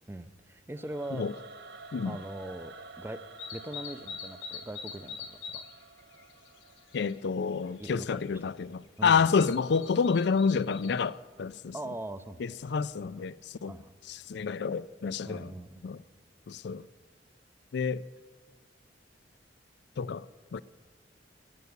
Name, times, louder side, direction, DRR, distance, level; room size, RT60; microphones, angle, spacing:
voice 1, 0.1-1.3 2.0-3.2 3.5-5.6 7.8-8.3 9.0-9.4 11.7-12.4 13.7-13.9 15.2-15.8, right 1 dB, 15° right, 0.5 m, -41 dB
Singing / Musical instrument, 0.7-7.8, right 3 dB, 65° right, 0.8 m, -50 dB
sound 1, 3.4-5.7 6.0-7.2 7.5-8.1 9.0-10.9, left 6 dB, 85° left, 1.3 m, -43 dB
voice 2, 6.9-11.8 12.4-13.8 14.1-15.5 15.8-16.0 16.5-16.9 17.7-18.0 20.0-20.3 20.5-20.6, left 5 dB, 65° left, 0.4 m, -29 dB
16.5 x 6.9 x 9.4 m
head